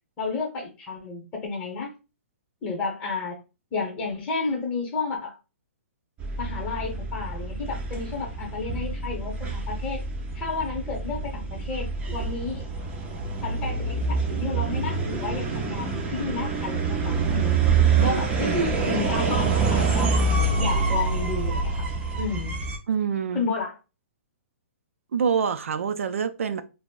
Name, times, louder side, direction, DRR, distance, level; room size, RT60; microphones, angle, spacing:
voice 1, 0.2-1.9 2.6-3.4 3.7-5.4 6.4-10.0 10.3-12.7 13.4-17.7 18.0-20.1 20.6-21.9 22.2-22.6 23.3-23.8, left 4 dB, 15° left, 0.8 m, -31 dB
sound 1, 6.2-22.8, right 4 dB, 15° right, 0.4 m, -26 dB
voice 2, 22.9-23.5 25.1-26.6, right 6 dB, 75° right, 0.4 m, -26 dB
2.2 x 2.0 x 3.6 m
hypercardioid pair, 155°, 7 cm